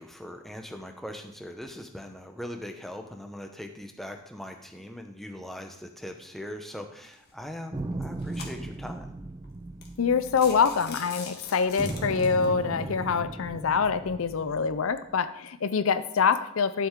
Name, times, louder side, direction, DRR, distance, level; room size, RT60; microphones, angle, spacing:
voice 1, 0.0-9.1, left 1 dB, ahead, 4 dB, 0.8 m, -40 dB
sound 1, 7.0-7.3 7.9-8.9 9.4-9.5 9.8-10.0 10.3-12.5, left 5 dB, 45° left, 1.6 m, -43 dB
sound 2, 7.7-11.3 11.8-15.1, right 2 dB, 15° right, 0.3 m, -37 dB
voice 2, 10.0-16.9, left 6 dB, 65° left, 12 dB, 0.5 m, -25 dB
12.0 x 7.4 x 3.7 m, 0.81 s
head